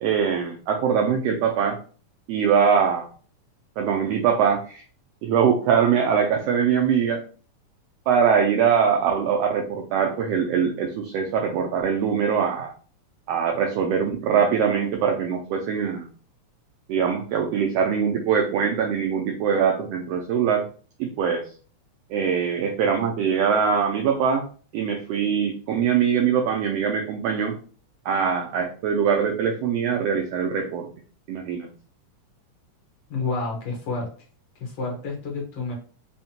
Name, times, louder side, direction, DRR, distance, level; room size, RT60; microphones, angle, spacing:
voice 1, 0.0-1.8 2.3-3.1 3.8-4.8 5.2-7.2 8.1-12.7 13.3-16.1 16.9-20.6 21.0-21.4 22.1-24.4 24.7-27.5 28.1-30.9 31.3-31.7, right 7 dB, 85° right, 2 dB, 1.4 m, -22 dB
voice 2, 33.1-34.1 34.6-35.7, left 3 dB, 65° left, -1 dB, 1.7 m, -29 dB
5.3 x 2.1 x 2.8 m, 0.41 s
omnidirectional pair, 3.4 m